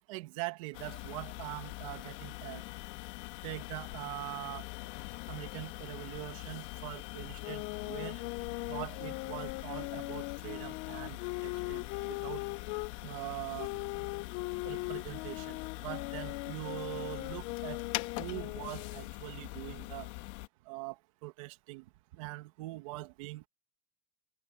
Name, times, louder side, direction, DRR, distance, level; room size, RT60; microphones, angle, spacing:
voice 1, 0.1-2.6 3.4-4.7 5.3-8.2 8.7-12.4 13.0-13.8 14.6-17.8 18.2-20.1 20.7-23.5, right 20 dB, 75° right, 1.9 m, -43 dB
sound 1, 0.7-20.5, left 21 dB, 65° left, 1.7 m, -43 dB
sound 2, 7.4-12.9 13.6-19.1, left 24 dB, 45° left, 0.4 m, -40 dB
cardioid pair, 175°, 17 cm